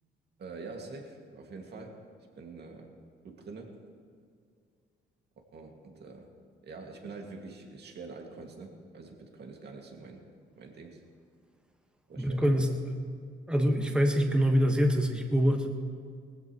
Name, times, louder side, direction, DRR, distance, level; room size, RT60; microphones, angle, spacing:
voice 1, 0.4-2.1 2.4-2.9 3.2-3.8 5.5-6.3 6.6-10.2 10.6-11.0 12.1-12.6, right 3 dB, 60° right, 1 dB, 2.3 m, -45 dB
voice 2, 12.2-12.8 13.5-15.7, equal, 5° right, 2 dB, 1.6 m, -25 dB
19.5 x 15.5 x 3.2 m, 2.2 s
cardioid pair, 90°, 20 cm